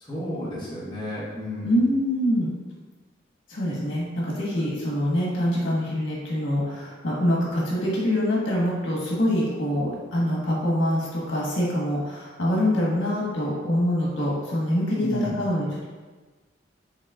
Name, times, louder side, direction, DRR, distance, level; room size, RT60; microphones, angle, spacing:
voice 1, 0.0-1.8 15.0-15.4, equal, 25° left, -8 dB, 1.3 m, -31 dB
voice 2, 1.6-2.5 3.5-15.8, equal, 90° left, -5 dB, 1.4 m, -25 dB
6.4 x 3.0 x 2.4 m, 1.3 s
head